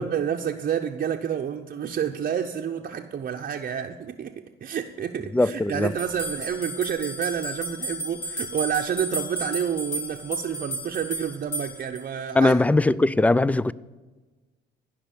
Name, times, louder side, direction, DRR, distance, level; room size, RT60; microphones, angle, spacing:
voice 1, 0.0-12.5, right 8 dB, 45° right, 0.8 m, -29 dB
voice 2, 5.3-5.9 12.3-13.7, left 2 dB, 5° left, 0.4 m, -20 dB
sound 1, 6.0-12.0, equal, 55° left, 3.9 m, -33 dB
15.0 x 5.8 x 8.2 m
supercardioid pair, 75°, 21 cm